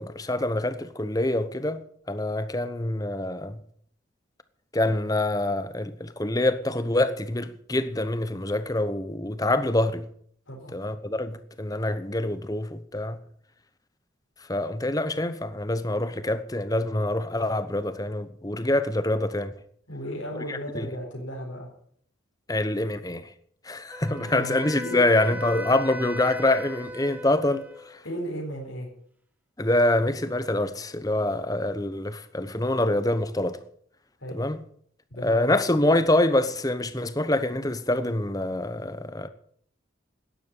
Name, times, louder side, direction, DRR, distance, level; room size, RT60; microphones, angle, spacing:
voice 1, 0.0-1.8 2.1-3.6 4.7-10.1 10.7-13.2 14.5-19.5 20.5-20.9 22.5-23.3 23.7-28.0 29.6-33.6 34.3-34.6 35.2-39.3, left 1 dB, 20° left, 0.9 m, -25 dB
voice 2, 19.9-21.7 24.1-25.0 28.0-28.9 34.2-34.4 35.1-35.5, equal, 80° left, 4.2 m, -35 dB
Wind instrument woodwind instrument, 23.9-28.0, equal, 10° right, 0.7 m, -37 dB
12.5 x 10.0 x 8.3 m
head